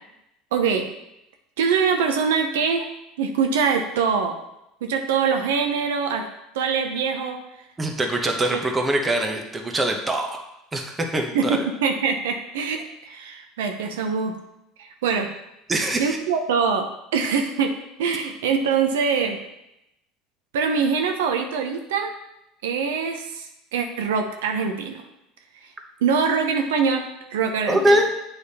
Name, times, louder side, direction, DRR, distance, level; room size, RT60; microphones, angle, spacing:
voice 1, 0.5-0.9 1.6-2.9 3.2-4.4 4.8-6.3 6.5-7.4 8.5-8.6 11.3-14.3 14.8-15.3 16.0-17.7 18.0-19.4 20.5-22.1 22.6-25.0 26.0-27.0 27.3-28.0, right 6 dB, 90° right, 4 dB, 0.8 m, -23 dB
voice 2, 7.8-10.4 10.7-11.6 15.7-16.2 27.7-28.1, right 1 dB, 15° right, 3 dB, 1.0 m, -23 dB
8.0 x 3.5 x 4.2 m, 0.86 s
supercardioid pair, 105°, 0 cm